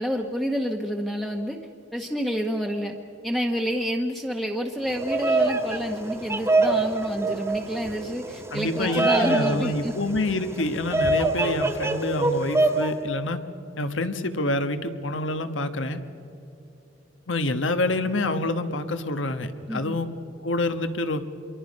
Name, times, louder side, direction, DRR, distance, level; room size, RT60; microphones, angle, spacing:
voice 1, 0.0-1.6 1.9-2.9 3.2-9.9 19.7-20.0, equal, ahead, 2 dB, 0.9 m, -28 dB
Bird vocalization bird call bird song, 4.9-12.9, right 2 dB, 15° right, 1.5 m, -25 dB
voice 2, 8.5-13.4 13.8-16.0 17.3-20.1 20.4-21.2, left 2 dB, 80° left, 9 dB, 1.3 m, -27 dB
26.5 x 23.0 x 5.3 m, 2.9 s
head